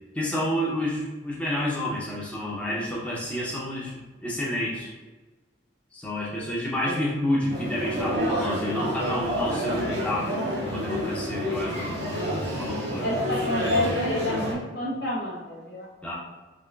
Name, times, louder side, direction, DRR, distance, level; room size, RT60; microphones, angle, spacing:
voice 1, 0.1-4.9 5.9-12.0 12.6-13.1 16.0-16.1, left 1 dB, 5° left, -6 dB, 0.4 m, -29 dB
sound 1, 7.5-14.5, equal, 55° right, 1.4 m, -29 dB
voice 2, 13.0-15.9, left 1 dB, 60° left, -3 dB, 0.9 m, -29 dB
3.7 x 2.9 x 2.2 m, 1.2 s
head